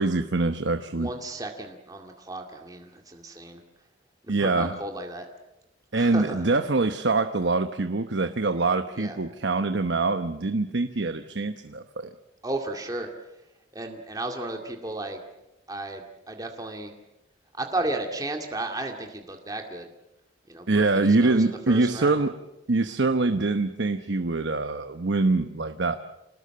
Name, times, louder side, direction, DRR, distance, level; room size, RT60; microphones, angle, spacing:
voice 1, 0.0-1.1 4.3-4.8 5.9-12.1 20.7-22.4 22.7-26.0, right 3 dB, 75° right, 9 dB, 1.0 m, -24 dB
voice 2, 1.0-3.6 4.2-5.3 5.9-6.4 9.0-9.2 12.4-13.1 13.7-15.2 15.7-16.9 17.5-19.9 20.5-22.2, right 2 dB, 20° right, 3 dB, 2.2 m, -34 dB
27.5 x 19.5 x 7.7 m, 0.92 s
head